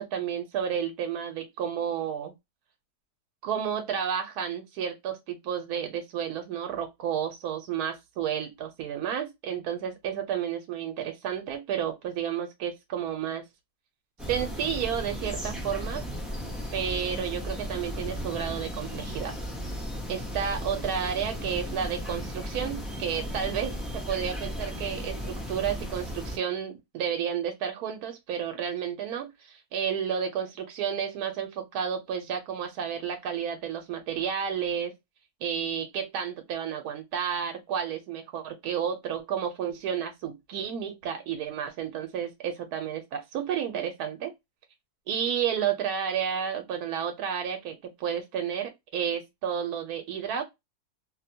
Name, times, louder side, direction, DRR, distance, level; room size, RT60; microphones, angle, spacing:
voice 1, 0.0-2.3 3.4-13.4 14.3-16.0 16.7-19.4 20.1-34.9 35.4-44.3 45.1-50.4, right 8 dB, 80° right, 1.1 m, -31 dB
sound 1, 14.2-26.4, equal, ahead, 0.3 m, -35 dB
2.7 x 2.1 x 2.6 m
omnidirectional pair, 1.6 m